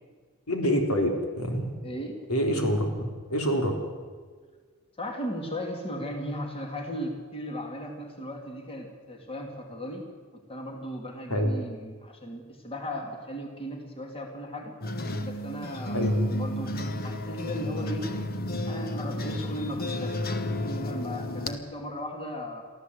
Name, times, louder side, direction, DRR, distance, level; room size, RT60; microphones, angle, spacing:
voice 1, 0.5-1.7 2.3-3.8 11.3-11.5 15.9-16.2, equal, 80° left, 3 dB, 3.4 m, -26 dB
voice 2, 1.8-2.2 5.0-14.8 15.2-18.1 18.7-22.6, equal, 25° left, 3 dB, 2.7 m, -36 dB
sound 1, 14.8-21.6, left 1 dB, 45° left, 1.3 m, -32 dB
23.5 x 15.0 x 8.1 m, 1.5 s
head